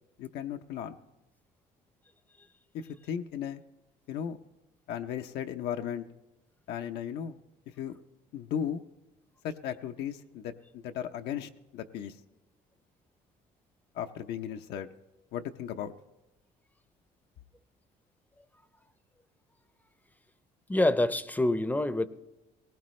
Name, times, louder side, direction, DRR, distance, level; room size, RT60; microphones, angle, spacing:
voice 1, 0.2-1.0 2.7-3.6 4.1-4.4 4.9-6.0 6.7-7.4 7.8-8.0 8.3-8.8 9.4-12.2 13.9-14.9 15.3-15.9, left 9 dB, 75° left, 6 dB, 0.7 m, -36 dB
voice 2, 20.7-22.1, left 1 dB, 10° left, 14 dB, 0.6 m, -26 dB
18.5 x 18.0 x 3.2 m, 1.1 s
cardioid pair, 110°, 17 cm